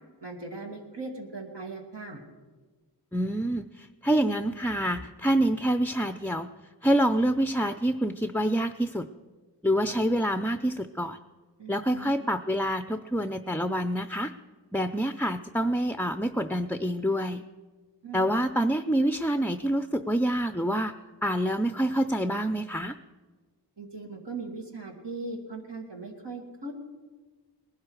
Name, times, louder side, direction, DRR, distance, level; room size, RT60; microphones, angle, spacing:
voice 1, 0.2-2.2 11.6-12.2 18.0-18.3 23.8-26.7, right 3 dB, 75° right, 1 dB, 2.2 m, -39 dB
voice 2, 3.1-6.5 6.8-9.1 9.6-11.2 11.7-14.3 14.7-17.4 18.1-20.9 21.2-23.0, right 1 dB, 5° left, 10 dB, 0.4 m, -27 dB
19.5 x 11.5 x 4.7 m, 1.4 s
wide cardioid pair, 40°, 42 cm